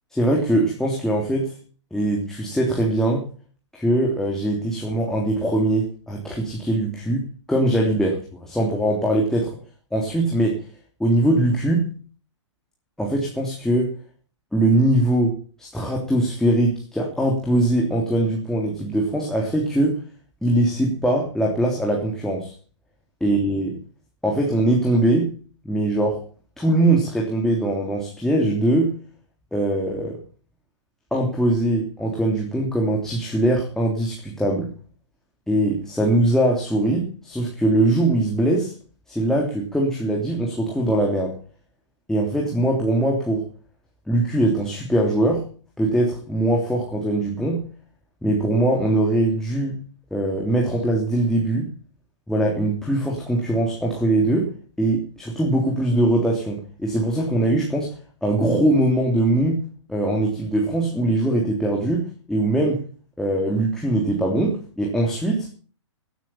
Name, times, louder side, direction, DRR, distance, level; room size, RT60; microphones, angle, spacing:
voice 1, 0.1-1.5 1.9-3.2 3.7-9.5 9.9-10.6 11.0-11.9 13.0-13.9 14.5-20.0 20.4-22.5 23.2-23.7 24.2-25.3 25.6-26.2 26.6-28.9 29.5-30.2 31.1-34.7 35.5-38.7 39.1-41.3 42.1-43.5 44.1-45.4 45.8-47.6 48.2-49.8 50.1-51.7 52.3-54.5 54.8-57.9 58.2-59.6 59.9-62.8 63.2-65.5, right 1 dB, 5° left, -2 dB, 3.2 m, -21 dB
18.0 x 9.2 x 5.7 m, 0.40 s
hypercardioid pair, 125°, 16 cm